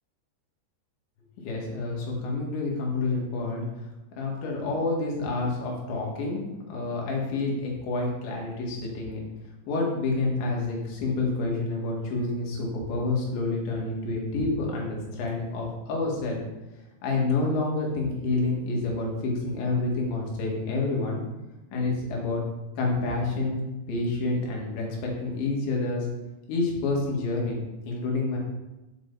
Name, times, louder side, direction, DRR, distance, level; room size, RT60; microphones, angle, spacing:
voice 1, 1.4-3.7 4.2-9.3 9.7-16.4 17.0-21.2 21.7-22.4 22.8-26.1 26.5-27.6 27.8-28.4, left 3 dB, 90° left, -2 dB, 4.3 m, -28 dB
10.0 x 7.6 x 4.1 m, 1.0 s
omnidirectional pair, 4.9 m